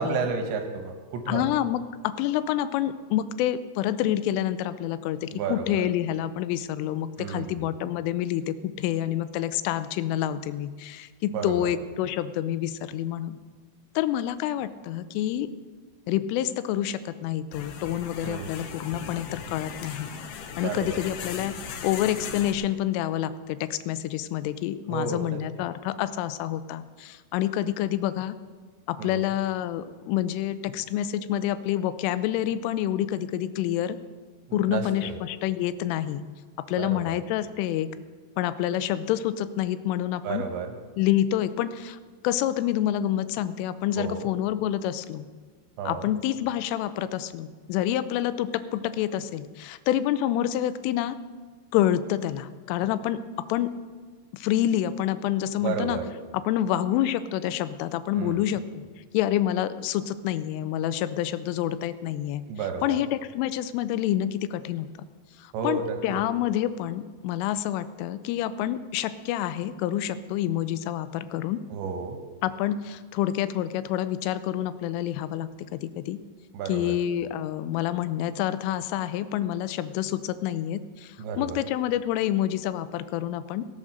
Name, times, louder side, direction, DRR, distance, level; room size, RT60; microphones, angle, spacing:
voice 1, 0.0-1.5 5.3-5.9 7.2-7.7 11.3-11.7 18.2-18.5 20.6-21.0 24.9-25.4 29.0-29.2 34.5-35.2 36.7-37.2 40.2-40.8 44.0-44.3 45.8-46.1 55.6-56.1 58.1-58.5 62.5-63.0 65.5-66.2 71.7-72.2 76.5-77.0 81.2-81.7, right 5 dB, 75° right, 5 dB, 3.1 m, -32 dB
voice 2, 1.3-13.4 14.0-15.5 16.1-20.1 20.6-21.5 21.8-28.4 28.9-34.0 34.5-36.2 36.7-37.9 38.4-40.4 41.0-42.0 42.2-45.3 45.9-51.2 51.7-53.2 53.5-53.7 54.3-56.0 56.3-58.8 59.1-62.4 62.8-64.9 65.4-71.6 72.4-76.2 76.7-83.6, left 12 dB, 90° left, 14 dB, 3.2 m, -28 dB
sound 1, 17.5-22.5, left 6 dB, 70° left, 2.6 m, -38 dB
17.0 x 7.6 x 6.5 m, 1.5 s
omnidirectional pair, 5.6 m